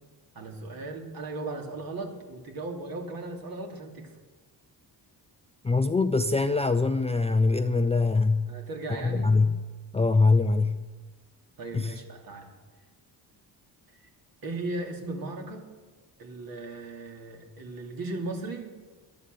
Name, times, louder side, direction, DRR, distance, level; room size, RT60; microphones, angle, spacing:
voice 1, 0.3-4.1 8.5-9.4 11.6-12.5 14.4-15.7 16.2-18.8, right 2 dB, 55° right, 2 dB, 3.0 m, -37 dB
voice 2, 5.6-8.5 9.0-9.6 9.9-10.8 11.7-11.9, left 3 dB, 15° left, 9 dB, 0.4 m, -23 dB
17.5 x 11.5 x 6.9 m, 1.3 s
cardioid pair, 140°, 41 cm